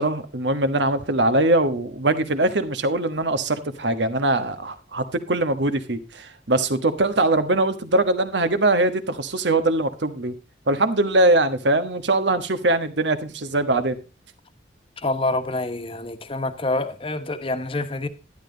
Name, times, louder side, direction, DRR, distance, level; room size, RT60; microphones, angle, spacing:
voice 1, 0.0-10.3 10.7-14.0, right 2 dB, 80° right, 1.3 m, -22 dB
voice 2, 15.0-18.1, left 2 dB, 30° left, 1.1 m, -26 dB
11.5 x 10.5 x 3.9 m
head